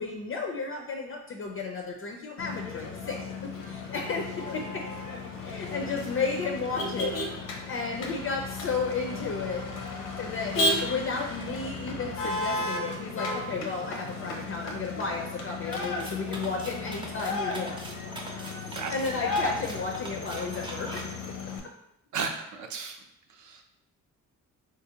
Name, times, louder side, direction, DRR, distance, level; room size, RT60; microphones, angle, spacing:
voice 1, 0.0-4.9 5.4-7.2 7.7-9.6 10.2-17.8 18.4-18.5 18.9-21.1 21.6-21.7, left 4 dB, 40° left, 1 dB, 0.4 m, -33 dB
Motor vehicle (road), 2.4-21.6, left 2 dB, 90° left, 0.7 m, -34 dB
sound 1, 15.7-21.0, right 1 dB, 15° right, 0.5 m, -42 dB
voice 2, 22.1-23.0 23.4-23.6, right 5 dB, 65° right, 4 dB, 0.6 m, -34 dB
3.7 x 2.6 x 2.8 m, 0.80 s
cardioid pair, 120°, 32 cm